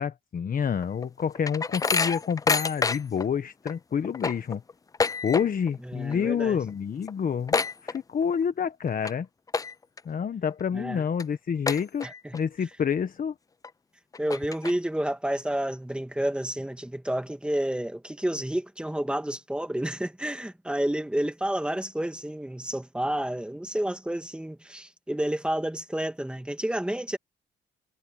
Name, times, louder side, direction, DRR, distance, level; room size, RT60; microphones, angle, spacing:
voice 1, 0.0-4.6 5.2-9.3 10.0-12.1 12.3-13.3, left 7 dB, 45° left, 1.2 m, -28 dB
sound 1, 0.8-3.3 3.7-3.8 4.0-5.8 6.0-6.4 6.7-6.8 7.0-8.4 8.9-9.1 9.5-10.0 10.5-10.6 11.2-11.3 11.7-12.4 12.8-12.9 13.6-13.7 14.1-15.0, left 4 dB, 15° left, 0.4 m, -28 dB
voice 2, 5.9-6.6 10.7-11.0 12.0-12.4 14.2-27.2, right 1 dB, 5° right, 2.2 m, -30 dB
cardioid pair, 90°, 20 cm